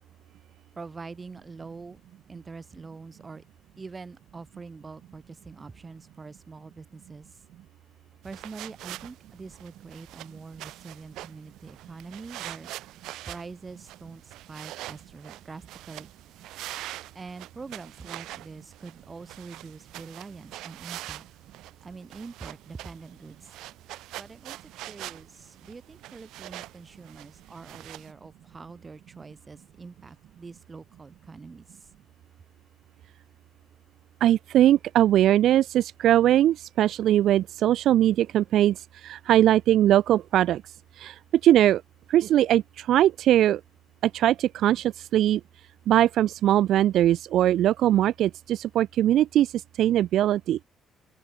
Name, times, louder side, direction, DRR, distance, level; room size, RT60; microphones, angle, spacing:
voice 1, 0.7-2.0 2.3-3.4 3.8-7.4 8.2-12.7 13.3-16.1 17.1-21.2 21.8-23.5 24.1-31.9, right 4 dB, 20° right, 6.6 m, -44 dB
sound 1, 8.2-28.1, right 16 dB, 90° right, 7.4 m, -44 dB
voice 2, 34.2-40.6 41.0-41.8 42.1-43.6 44.0-45.4 45.9-50.6, right 12 dB, 60° right, 0.4 m, -21 dB
open air
cardioid pair, 170°, 0 cm